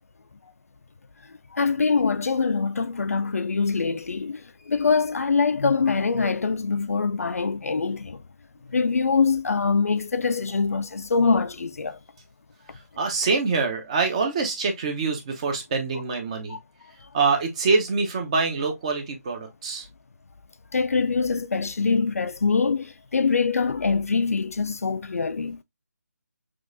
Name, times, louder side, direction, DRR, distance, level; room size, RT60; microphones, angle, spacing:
voice 1, 1.5-4.4 4.7-8.2 8.7-12.0 20.7-25.6, left 4 dB, 60° left, 0.4 m, -24 dB
voice 2, 13.0-16.6 17.1-19.9, right 4 dB, 20° right, 0.7 m, -25 dB
6.1 x 2.4 x 2.5 m
figure-of-eight pair, 160°, 9 cm